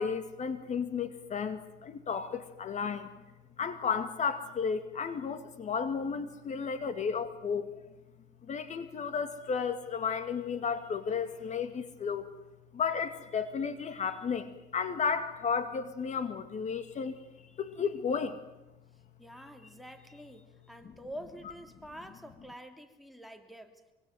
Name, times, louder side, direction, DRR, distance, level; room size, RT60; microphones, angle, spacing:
voice 1, 0.0-3.1 3.6-7.8 8.4-12.3 12.7-17.2 17.6-18.4 20.8-20.9, left 6 dB, 45° left, 10 dB, 2.3 m, -33 dB
voice 2, 19.2-23.8, equal, ahead, 8 dB, 3.0 m, -47 dB
24.5 x 24.5 x 9.3 m, 0.97 s
cardioid pair, 110°, 17 cm